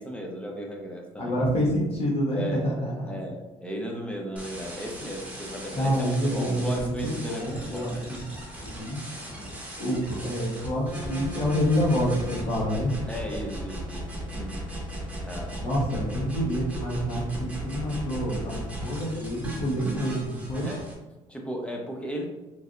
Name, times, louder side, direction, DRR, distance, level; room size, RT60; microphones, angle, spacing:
voice 1, 0.0-1.4 2.3-8.2 8.7-8.9 9.4-9.5 13.1-14.1 14.3-14.6 15.2-15.6 20.6-20.9 21.3-22.3, equal, 10° left, 1 dB, 0.7 m, -36 dB
voice 2, 1.2-2.9 5.7-8.2 8.6-9.0 9.8-12.9 15.6-20.7, equal, 45° left, -3 dB, 1.1 m, -27 dB
sound 1, 4.4-20.9, right 1 dB, 10° right, 1.0 m, -37 dB
3.2 x 2.6 x 2.5 m, 1.0 s
cardioid pair, 90°, 13 cm